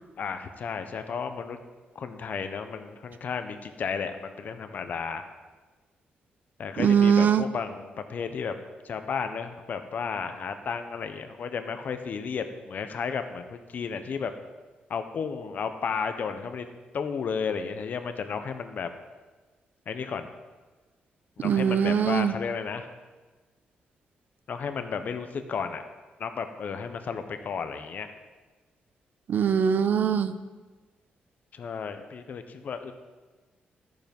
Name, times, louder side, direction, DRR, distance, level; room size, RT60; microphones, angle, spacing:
voice 1, 0.2-1.6 1.9-5.3 6.6-8.6 8.8-14.3 14.9-16.7 16.9-18.9 19.9-20.3 21.4-22.9 24.5-25.8 26.2-28.1 31.5-32.9, left 6 dB, 55° left, 8 dB, 1.1 m, -33 dB
voice 2, 6.8-7.4 21.4-22.3 29.3-30.4, right 7 dB, 60° right, 11 dB, 0.7 m, -22 dB
13.5 x 9.3 x 5.4 m, 1.3 s
cardioid pair, 135°, 3 cm